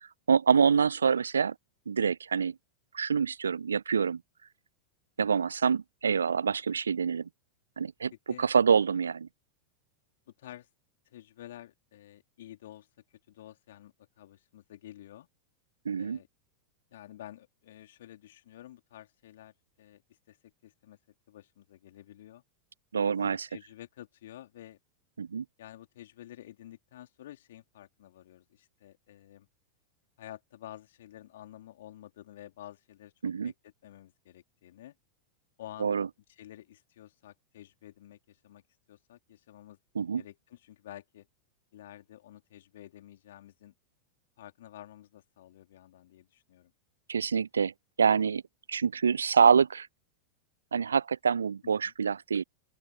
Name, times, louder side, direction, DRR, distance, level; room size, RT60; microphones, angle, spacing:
voice 1, 0.0-1.5 1.9-2.5 2.9-4.2 5.2-7.3 7.8-8.1 8.4-9.3 15.9-16.2 22.9-23.4 25.2-25.4 33.2-33.5 35.8-36.1 40.0-40.2 47.1-47.7 48.0-48.4 48.7-49.9 50.7-52.4, right 6 dB, 70° right, 0.5 m, -26 dB
voice 2, 10.3-10.7 11.1-15.3 16.0-16.3 16.9-20.0 20.3-21.0 21.3-22.4 23.2-24.8 25.6-29.5 30.2-34.9 35.6-35.9 36.3-38.6 38.9-39.8 40.2-41.3 41.7-43.7 44.4-46.7 48.2-48.3 51.6-51.9, left 13 dB, 60° left, 3.8 m, -50 dB
open air
figure-of-eight pair, 90°, 0 cm